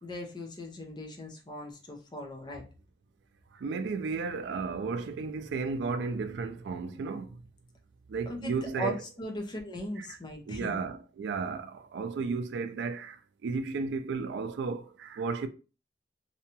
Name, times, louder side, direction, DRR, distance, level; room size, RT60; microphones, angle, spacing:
voice 1, 0.0-2.6 8.3-10.8, equal, 25° left, 0.5 m, -38 dB
voice 2, 3.5-7.4 8.1-9.0 10.0-10.2 10.5-15.5, right 4 dB, 80° right, 0.3 m, -34 dB
2.7 x 2.2 x 2.8 m
head